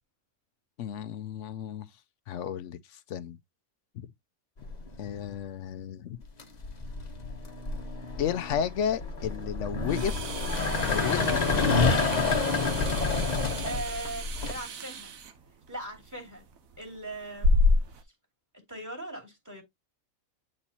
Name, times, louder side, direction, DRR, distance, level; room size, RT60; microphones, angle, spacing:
voice 1, 0.8-1.9 2.3-3.4 3.9-4.1 5.0-6.2 8.2-10.2 10.8-11.6, left 8 dB, 65° left, 0.8 m, -33 dB
sound 1, 4.6-5.1 6.2-14.5, left 4 dB, 30° left, 1.0 m, -28 dB
sound 2, 9.8-18.0, left 2 dB, 70° right, 1.3 m, -31 dB
voice 2, 13.6-15.1 15.7-16.5 16.8-17.5 18.5-19.6, right 1 dB, 10° right, 2.5 m, -39 dB
8.8 x 4.3 x 2.8 m
omnidirectional pair, 1.5 m